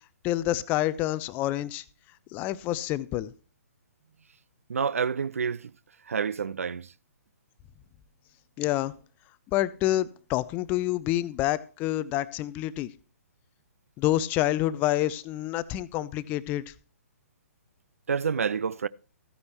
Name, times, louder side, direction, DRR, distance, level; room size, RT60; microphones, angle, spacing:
voice 1, 0.2-1.8 2.3-3.3 8.6-8.9 9.5-12.9 14.0-16.6, left 14 dB, 20° left, 0.5 m, -27 dB
voice 2, 4.7-5.7 6.1-6.9 18.1-18.9, right 6 dB, 65° right, 0.4 m, -28 dB
14.5 x 9.5 x 3.0 m
figure-of-eight pair, 125°, 8 cm